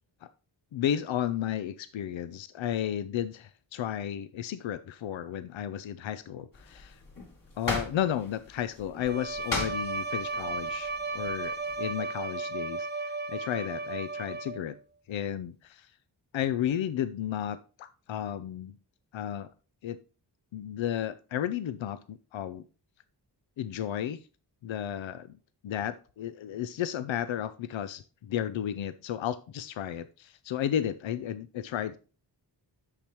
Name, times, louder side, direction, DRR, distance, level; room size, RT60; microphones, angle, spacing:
voice 1, 0.7-7.0 7.6-14.8 15.1-15.9 16.3-18.8 19.1-19.5 19.8-20.0 20.5-22.6 23.6-24.2 24.6-25.3 25.6-32.0, left 10 dB, 85° left, 13 dB, 0.6 m, -33 dB
sound 1, 6.5-11.9, left 2 dB, 45° left, 2.3 m, -39 dB
Bowed string instrument, 9.0-14.8, right 3 dB, 25° right, 0.4 m, -35 dB
8.7 x 6.5 x 3.0 m, 0.35 s
wide cardioid pair, 105°, 45 cm